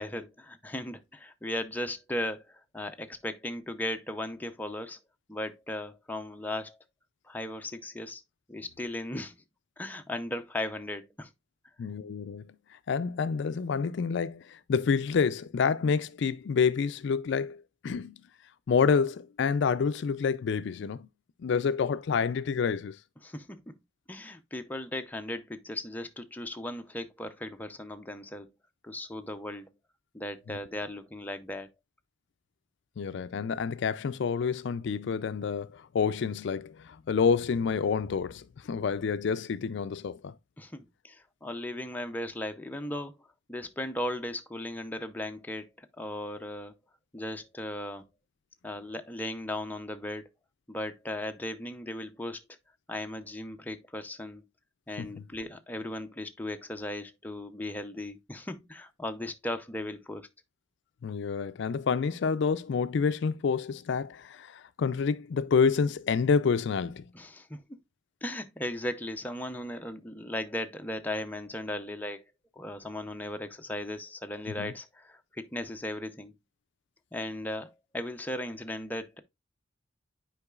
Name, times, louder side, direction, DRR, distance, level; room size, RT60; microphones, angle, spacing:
voice 1, 0.0-5.0 5.3-6.8 7.3-8.2 8.5-9.4 9.8-11.3 23.2-23.8 24.1-28.5 28.8-29.7 30.1-31.7 40.6-43.1 43.5-46.7 47.1-48.0 48.6-50.3 50.7-52.4 52.9-54.4 54.9-60.3 67.1-67.6 68.2-72.2 72.6-76.3 77.1-79.2, left 1 dB, 10° left, 0.5 m, -37 dB
voice 2, 11.8-12.6 12.9-18.1 18.7-21.1 21.4-23.0 30.5-30.6 33.0-40.3 55.0-55.2 61.0-67.0 74.5-74.7, left 5 dB, 65° left, 0.4 m, -28 dB
9.8 x 4.6 x 2.3 m
head